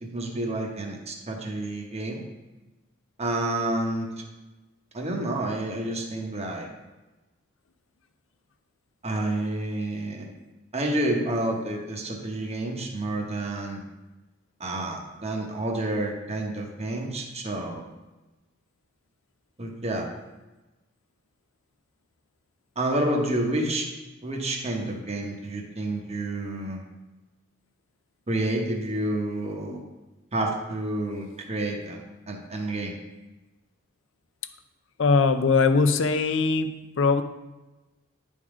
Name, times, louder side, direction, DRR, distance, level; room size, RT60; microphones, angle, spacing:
voice 1, 0.0-2.2 3.2-4.2 4.9-6.7 9.0-10.3 10.7-13.8 14.6-17.8 19.6-20.1 22.8-23.9 24.2-26.8 28.3-29.8 30.3-32.0 32.3-32.9, right 1 dB, 30° right, 1 dB, 1.1 m, -29 dB
voice 2, 35.0-37.2, left 4 dB, 65° left, 9 dB, 0.5 m, -21 dB
10.0 x 3.7 x 4.9 m, 1.1 s
head